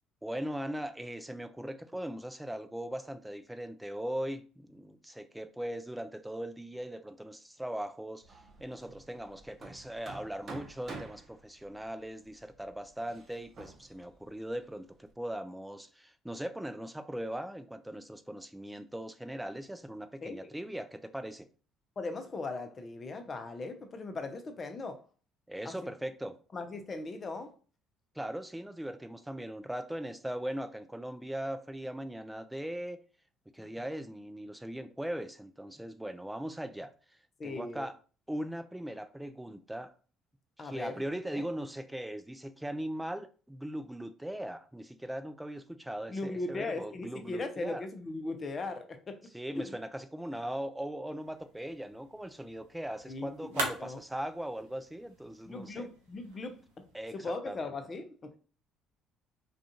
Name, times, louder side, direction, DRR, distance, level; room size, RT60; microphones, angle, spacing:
voice 1, 0.2-8.2 8.6-21.5 25.5-26.3 28.2-33.0 33.5-36.9 37.4-37.9 38.3-39.9 40.6-47.8 49.3-55.9 56.9-57.1 57.5-57.7, right 1 dB, 5° right, 0.4 m, -39 dB
Hammer, 8.2-15.1, right 3 dB, 45° right, 0.7 m, -50 dB
voice 2, 22.0-25.0 25.6-25.9 26.5-27.5 33.6-33.7 37.4-37.9 40.6-41.0 41.3-41.4 46.1-49.3 49.5-49.8 53.1-54.0 55.5-56.8 57.1-58.4, left 3 dB, 40° left, 0.6 m, -39 dB
sound 1, 51.2-57.1, right 2 dB, 90° right, 0.7 m, -43 dB
2.4 x 2.3 x 2.7 m
hypercardioid pair, 60°, 0 cm